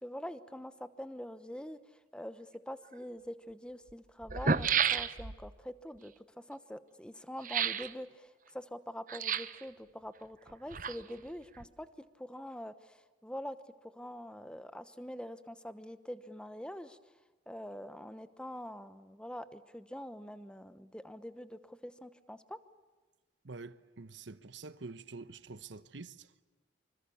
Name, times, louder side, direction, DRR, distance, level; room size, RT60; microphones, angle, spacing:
voice 1, 0.0-13.6 13.8-17.0 17.5-22.6, equal, 5° left, 1.0 m, -45 dB
sound 1, 2.9-3.0 3.9-4.0 4.2-5.5 7.4-7.9 9.1-9.6 10.5-11.3 11.6-11.7, right 6 dB, 45° right, 0.9 m, -31 dB
voice 2, 23.4-26.4, right 3 dB, 75° right, 1.1 m, -47 dB
26.0 x 25.5 x 7.1 m
head